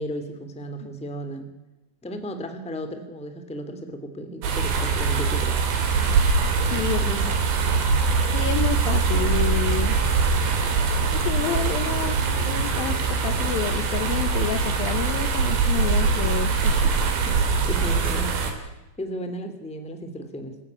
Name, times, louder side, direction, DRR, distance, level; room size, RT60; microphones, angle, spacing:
voice 1, 0.0-1.5 2.0-5.6 6.0-6.2 7.0-7.4 17.2-17.3 17.7-20.6, equal, ahead, 8 dB, 1.6 m, -34 dB
sound 1, 4.4-18.5, right 5 dB, 75° right, 5.2 m, -23 dB
voice 2, 6.6-7.0 8.3-10.0 11.1-16.9, left 11 dB, 70° left, 10 dB, 2.4 m, -29 dB
26.0 x 15.5 x 9.6 m, 1.0 s
omnidirectional pair, 5.1 m